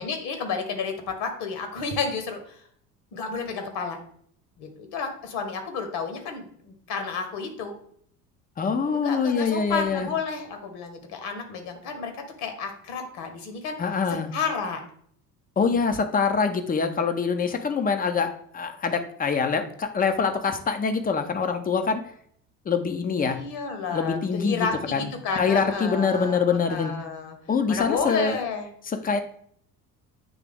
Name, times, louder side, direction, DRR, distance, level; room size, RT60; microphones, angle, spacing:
voice 1, 0.0-2.6 3.1-4.0 4.6-7.7 8.7-12.1 12.4-13.8 14.3-14.8 23.1-27.4 27.7-28.7, left 5 dB, 50° left, 6 dB, 1.3 m, -31 dB
voice 2, 8.6-10.1 13.8-14.3 15.6-22.0 22.7-23.4 23.9-26.9 27.5-28.4 28.8-29.2, left 5 dB, 20° left, 7 dB, 0.6 m, -25 dB
8.5 x 3.3 x 3.5 m, 0.63 s
figure-of-eight pair, 65°, 50 cm